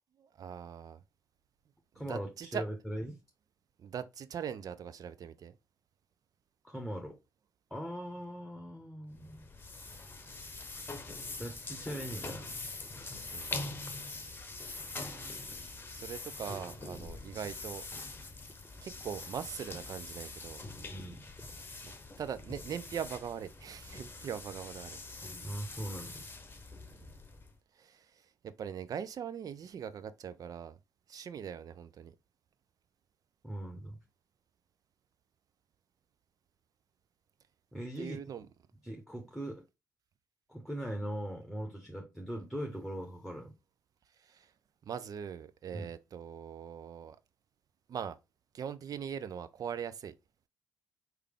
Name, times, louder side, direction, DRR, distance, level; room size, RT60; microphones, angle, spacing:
voice 1, 0.4-1.0 2.0-2.6 3.8-5.5 13.3-13.5 15.9-18.3 18.8-20.6 21.8-21.9 22.2-25.0 27.0-27.1 27.8-30.8 31.1-32.1 38.0-38.5 44.2-44.5 44.9-47.2 47.9-48.2 48.5-50.1, right 8 dB, 45° right, 0.6 m, -41 dB
voice 2, 1.9-3.2 6.6-7.2 7.7-9.4 11.4-12.6 17.0-17.1 20.9-21.5 25.4-26.2 33.4-34.0 37.7-38.2 38.8-39.6 40.5-43.5 45.7-45.9, right 1 dB, ahead, 1.1 m, -40 dB
sound 1, 9.1-27.6, left 3 dB, 25° left, 0.9 m, -44 dB
4.6 x 3.3 x 3.5 m
figure-of-eight pair, 45°, 9 cm